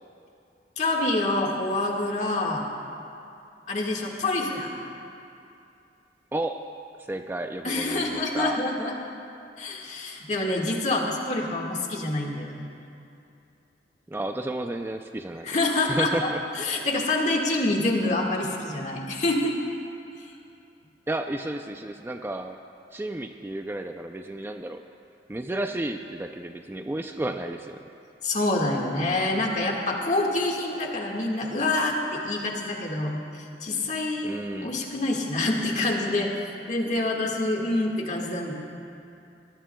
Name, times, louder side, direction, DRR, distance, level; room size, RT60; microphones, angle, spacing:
voice 1, 0.8-2.6 3.7-4.7 7.6-8.9 9.6-12.7 15.4-16.3 16.5-19.5 28.2-33.2 33.6-34.3 34.6-36.3 36.7-38.5, left 2 dB, 45° left, 0 dB, 1.7 m, -26 dB
voice 2, 6.3-6.6 7.1-8.6 14.1-15.6 15.8-16.4 21.1-22.6 22.9-24.8 25.3-27.8 34.2-34.7, right 1 dB, 15° right, 5 dB, 0.4 m, -32 dB
23.0 x 18.5 x 2.3 m, 2.6 s
head